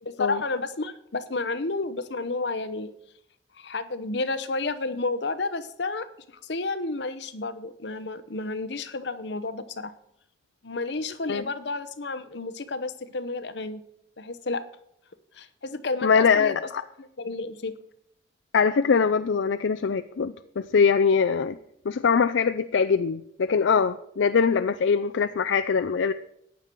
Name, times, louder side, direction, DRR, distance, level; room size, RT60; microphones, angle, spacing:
voice 1, 0.0-2.9 3.6-6.1 6.4-9.9 10.6-13.8 14.2-14.6 15.3-16.7 17.0-17.7, left 3 dB, 70° left, 12 dB, 0.8 m, -31 dB
voice 2, 16.0-16.8 18.5-21.6 21.9-26.1, left 5 dB, 85° left, 10 dB, 0.4 m, -22 dB
14.5 x 9.7 x 4.5 m, 0.74 s
head